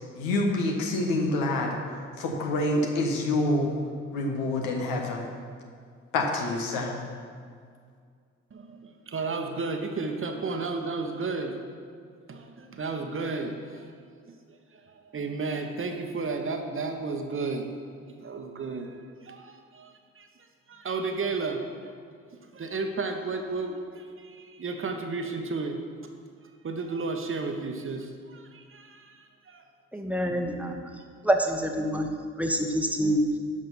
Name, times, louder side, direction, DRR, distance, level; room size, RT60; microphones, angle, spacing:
voice 1, 0.1-1.8 2.2-3.7 4.1-5.3 6.1-7.0, left 2 dB, 65° left, 1 dB, 1.4 m, -27 dB
voice 2, 8.5-11.6 12.3-13.9 14.9-17.7 18.1-18.9 19.2-20.3 20.7-21.9 22.5-25.8 26.6-29.6, right 3 dB, 35° right, 4 dB, 1.2 m, -33 dB
voice 3, 29.9-30.8 31.2-32.1 32.4-33.2, equal, 5° right, 3 dB, 1.3 m, -26 dB
11.0 x 6.5 x 5.6 m, 2.1 s
figure-of-eight pair, 40°, 37 cm